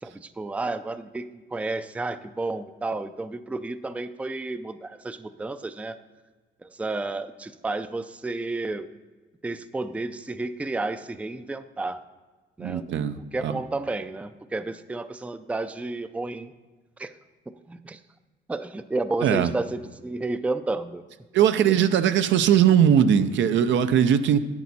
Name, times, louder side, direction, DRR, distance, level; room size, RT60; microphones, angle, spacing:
voice 1, 0.0-6.0 6.6-8.9 9.4-12.0 12.6-12.8 13.3-16.5 17.0-17.1 17.5-18.0 18.5-21.0, right 2 dB, 5° right, 11 dB, 0.4 m, -31 dB
voice 2, 12.6-13.6 19.2-19.5 21.3-24.4, right 9 dB, 70° right, 10 dB, 0.6 m, -20 dB
10.5 x 8.4 x 4.1 m, 1.3 s
cardioid pair, 90°, 20 cm